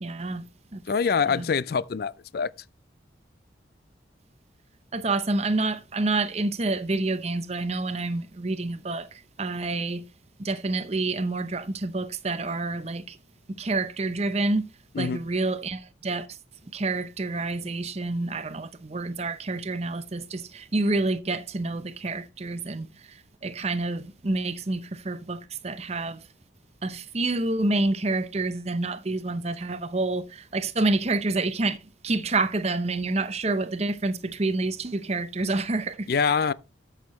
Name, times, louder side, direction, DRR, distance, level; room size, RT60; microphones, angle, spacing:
voice 1, 0.0-0.8 1.3-1.5 4.9-10.0 10.4-13.2 13.5-14.7 15.0-16.4 16.7-26.2 26.8-31.8 32.0-36.5, right 2 dB, 35° right, 0.7 m, -28 dB
voice 2, 0.9-2.5 15.0-15.2 36.1-36.5, left 5 dB, 50° left, 0.4 m, -25 dB
12.5 x 6.6 x 3.0 m
head